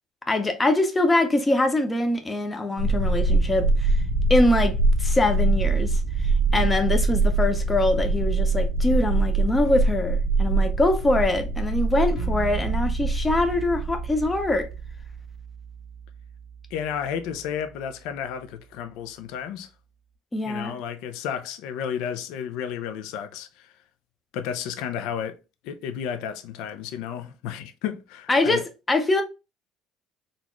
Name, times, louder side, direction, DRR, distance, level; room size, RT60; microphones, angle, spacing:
voice 1, 0.3-3.9 4.3-14.7 20.3-20.8 28.3-29.2, left 2 dB, 10° left, 0.5 m, -23 dB
sound 1, 2.8-15.0, right 3 dB, 70° right, 0.4 m, -23 dB
sound 2, 12.1-17.9, right 6 dB, 45° left, 1.5 m, -36 dB
voice 2, 16.7-19.7 20.5-23.7 24.3-25.4 25.6-28.6, left 8 dB, 70° left, 0.5 m, -32 dB
4.0 x 2.3 x 2.9 m
cardioid pair, 175°, 0 cm